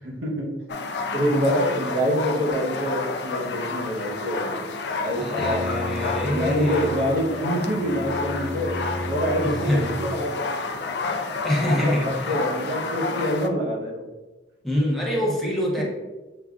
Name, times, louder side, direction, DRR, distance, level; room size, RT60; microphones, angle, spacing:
voice 1, 0.0-0.5 1.1-4.6 5.0-5.7 6.3-10.5 11.6-12.0 12.3-14.0 15.8-15.9, equal, 80° right, -3 dB, 1.1 m, -26 dB
sound 1, 0.7-13.5, left 4 dB, 65° left, 0.4 m, -30 dB
voice 2, 5.1-6.9 9.4-10.0 11.0-11.2 11.4-12.4 14.6-15.8, left 1 dB, ahead, -4 dB, 0.7 m, -25 dB
Bowed string instrument, 5.1-10.2, left 1 dB, 45° right, 0.8 m, -33 dB
7.0 x 2.3 x 2.4 m, 1.1 s
head